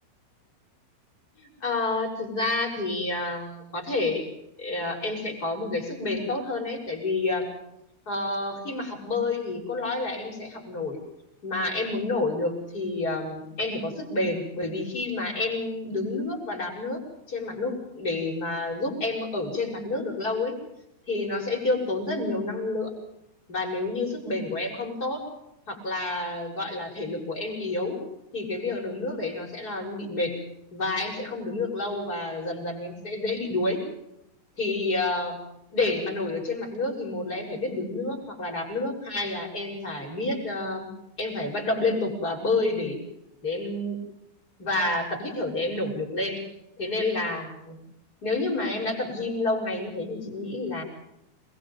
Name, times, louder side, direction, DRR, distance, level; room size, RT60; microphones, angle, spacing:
voice 1, 1.4-4.3 4.6-7.5 8.1-11.0 11.4-20.6 21.1-22.9 23.5-25.2 25.7-28.0 28.3-30.3 30.7-33.8 34.6-35.4 35.7-40.9 41.2-43.0 43.4-44.0 44.6-46.4 46.8-47.8 48.2-50.8, left 2 dB, 15° left, 0 dB, 6.6 m, -29 dB
28.0 x 22.5 x 5.4 m, 0.82 s
omnidirectional pair, 6.0 m